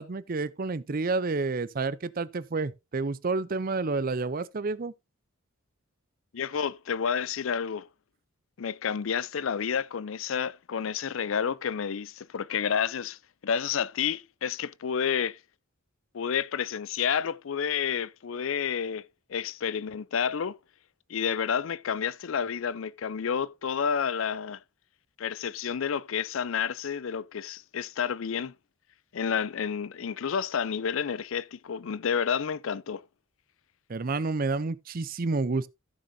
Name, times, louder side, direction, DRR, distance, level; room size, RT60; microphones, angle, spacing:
voice 1, 0.0-4.9 33.9-35.7, right 3 dB, 45° right, 0.5 m, -29 dB
voice 2, 6.3-7.9 8.6-15.4 16.1-20.6 21.1-24.6 25.2-28.5 29.1-33.0, left 7 dB, 70° left, 0.5 m, -30 dB
15.0 x 6.5 x 2.7 m
head